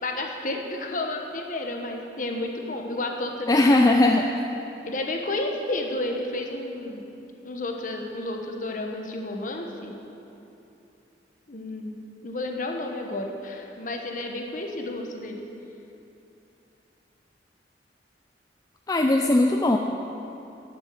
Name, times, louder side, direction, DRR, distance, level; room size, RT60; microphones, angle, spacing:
voice 1, 0.0-3.9 4.8-7.0 7.4-9.9 11.5-11.9 12.2-15.4, left 2 dB, 50° left, 2 dB, 1.1 m, -31 dB
voice 2, 3.5-4.3 18.9-19.8, left 2 dB, 20° left, 3 dB, 0.4 m, -19 dB
9.9 x 7.9 x 7.6 m, 2.9 s
head